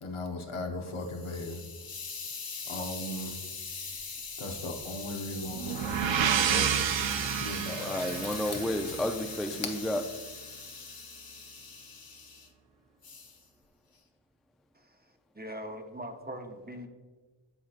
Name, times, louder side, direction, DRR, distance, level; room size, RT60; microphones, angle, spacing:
voice 1, 0.0-1.6 2.7-3.3 4.4-8.5, left 1 dB, 85° left, 2 dB, 1.0 m, -38 dB
Hiss, 0.7-12.5 13.0-13.4, left 4 dB, 50° left, 0.8 m, -42 dB
sound 1, 5.5-9.3, right 8 dB, 70° right, 0.5 m, -30 dB
voice 2, 7.8-10.0, left 1 dB, ahead, 6 dB, 0.3 m, -31 dB
voice 3, 14.7-16.9, equal, 20° right, 5 dB, 0.7 m, -42 dB
12.0 x 4.3 x 2.5 m, 1.3 s
wide cardioid pair, 50°, 48 cm